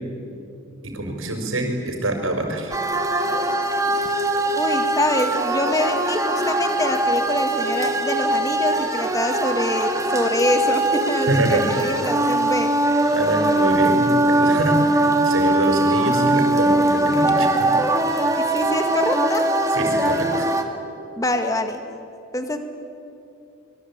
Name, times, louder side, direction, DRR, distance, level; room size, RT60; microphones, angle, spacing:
voice 1, 0.8-2.7 11.3-11.7 13.1-17.7 19.7-20.5, right 1 dB, 85° right, 3 dB, 5.4 m, -25 dB
sound 1, 2.7-20.6, right 1 dB, 15° right, 1.8 m, -21 dB
voice 2, 4.6-12.7 18.4-19.4 21.2-21.8 22.3-22.6, left 1 dB, 15° left, 6 dB, 1.8 m, -25 dB
25.0 x 23.5 x 8.8 m, 2.6 s
head